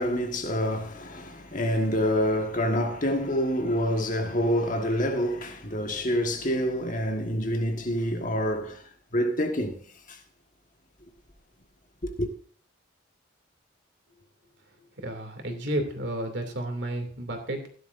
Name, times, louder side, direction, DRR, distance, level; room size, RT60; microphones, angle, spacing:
voice 1, 0.0-9.8 10.1-10.2 12.0-12.3, equal, 40° left, 1.6 m, -27 dB
voice 2, 15.0-17.7, right 1 dB, 55° right, 2.7 m, -32 dB
16.5 x 11.0 x 2.6 m
head